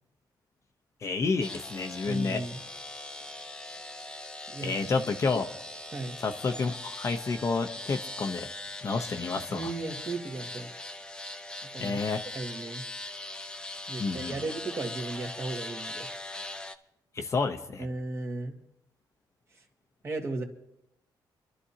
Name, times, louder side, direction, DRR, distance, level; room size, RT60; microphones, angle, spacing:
voice 1, 1.0-2.4 4.6-5.5 6.2-8.5 8.8-9.7 11.8-12.2 14.0-14.3 17.2-17.9, left 4 dB, 40° left, 6 dB, 0.9 m, -30 dB
sound 1, 1.4-16.8, left 2 dB, 10° left, 0.7 m, -41 dB
voice 2, 2.1-2.6 4.5-4.9 5.9-6.2 9.5-10.7 11.7-12.0 12.3-12.8 13.9-16.1 17.8-18.6 20.0-20.4, right 2 dB, 35° right, 2 dB, 1.8 m, -35 dB
26.0 x 12.0 x 2.9 m, 0.84 s
cardioid pair, 135°, 8 cm